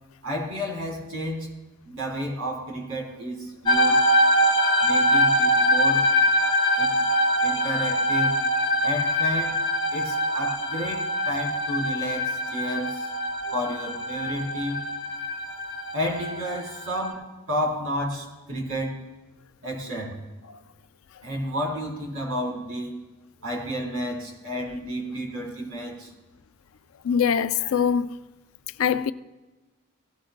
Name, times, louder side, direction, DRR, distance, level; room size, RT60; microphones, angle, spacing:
voice 1, 0.2-1.5 1.8-4.0 4.8-6.1 6.8-7.0 7.4-8.4 8.8-9.6 9.9-13.1 13.5-14.8 15.9-18.9 19.6-20.2 21.2-23.0 23.4-26.1, equal, 80° right, 3.7 m, -31 dB
sound 1, 3.7-17.1, left 1 dB, 20° left, 0.9 m, -23 dB
voice 2, 27.0-28.2 28.8-29.1, left 7 dB, 80° left, 0.4 m, -23 dB
17.5 x 15.5 x 2.2 m
head